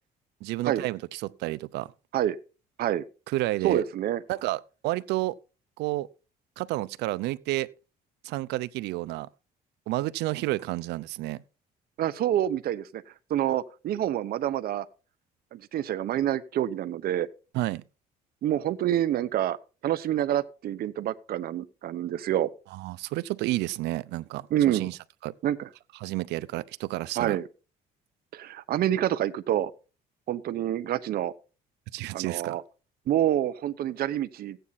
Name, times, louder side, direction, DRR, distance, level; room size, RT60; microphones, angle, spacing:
voice 1, 0.4-1.9 3.3-3.8 4.3-5.3 5.8-6.1 6.6-7.7 8.2-9.3 9.9-11.4 17.5-17.8 22.7-25.0 25.2-25.3 26.0-27.4 31.9-32.6, right 18 dB, 85° right, 0.7 m, -30 dB
voice 2, 3.6-4.2 12.0-13.0 13.3-14.9 15.5-17.3 18.4-19.6 19.8-22.5 24.5-24.8 25.4-25.7 27.2-27.4 28.3-29.7 30.3-31.3 32.1-32.6 33.1-34.6, right 12 dB, 65° right, 1.0 m, -27 dB
15.5 x 9.2 x 4.2 m
cardioid pair, 110°, 17 cm